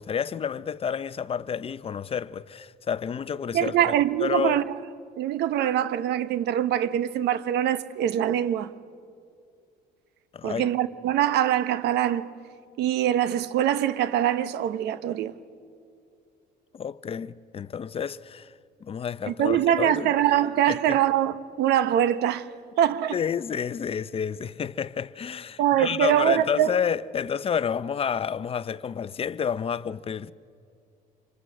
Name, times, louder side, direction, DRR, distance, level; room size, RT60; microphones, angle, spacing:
voice 1, 0.0-3.9 4.2-4.6 10.3-10.6 16.7-18.5 18.8-20.1 20.7-21.0 23.1-30.3, left 7 dB, 35° left, 0.6 m, -30 dB
voice 2, 3.5-4.7 5.2-8.7 10.4-12.3 12.8-15.3 19.3-22.5 22.8-23.2 25.6-26.7, right 11 dB, 80° right, 1.0 m, -23 dB
26.5 x 24.5 x 7.7 m
cardioid pair, 110°, 17 cm